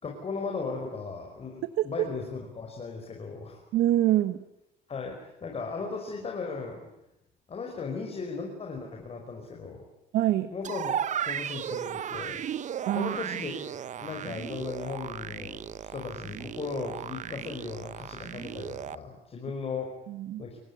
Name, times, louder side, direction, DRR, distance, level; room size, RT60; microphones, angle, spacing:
voice 1, 0.0-3.6 4.9-6.9 7.5-9.8 10.5-10.9 11.3-12.4 12.9-19.9 20.4-20.6, left 4 dB, 35° left, 1 dB, 5.4 m, -37 dB
voice 2, 1.8-2.1 3.7-4.4 10.1-10.5 12.9-13.2 20.1-20.4, right 13 dB, 80° right, 12 dB, 1.3 m, -25 dB
sound 1, 10.6-19.0, right 9 dB, 45° right, 1.0 m, -35 dB
30.0 x 17.0 x 9.8 m, 0.88 s
cardioid pair, 110°, 17 cm